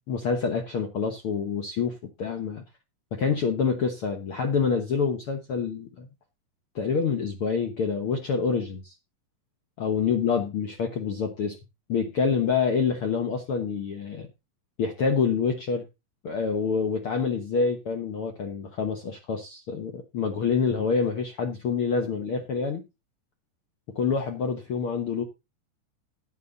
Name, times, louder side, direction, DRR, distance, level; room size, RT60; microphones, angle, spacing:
voice 1, 0.1-2.6 3.1-6.1 6.7-8.9 9.8-11.6 11.9-14.3 14.8-15.8 16.2-22.8 23.9-25.2, left 5 dB, 55° left, 1.6 m, -27 dB
11.0 x 9.5 x 4.0 m
omnidirectional pair, 4.0 m